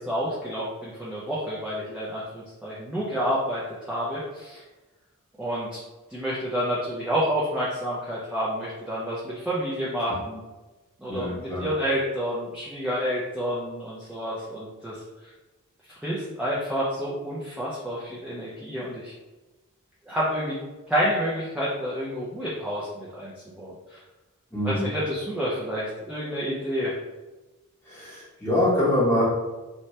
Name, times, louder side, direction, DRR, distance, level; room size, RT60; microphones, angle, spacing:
voice 1, 0.0-4.6 5.4-5.8 6.1-10.4 11.0-15.0 16.0-19.1 20.1-20.6 20.9-23.3 23.6-24.0 24.6-26.9, equal, 5° right, -8 dB, 0.4 m, -29 dB
voice 2, 11.1-11.6 24.5-24.9 27.8-29.2, left 1 dB, 10° left, -8 dB, 1.0 m, -24 dB
2.7 x 2.1 x 3.1 m, 1.1 s
head